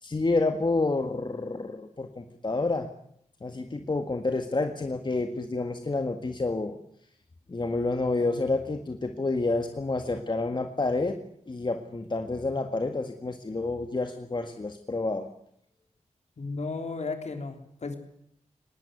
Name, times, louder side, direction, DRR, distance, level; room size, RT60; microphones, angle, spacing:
voice 1, 0.0-2.9 3.4-6.8 7.5-11.2 11.5-15.3, left 3 dB, 35° left, 6 dB, 1.8 m, -29 dB
voice 2, 16.4-18.0, left 3 dB, 60° left, 6 dB, 3.6 m, -34 dB
20.5 x 18.0 x 9.5 m, 0.69 s
wide cardioid pair, 75°, 13 cm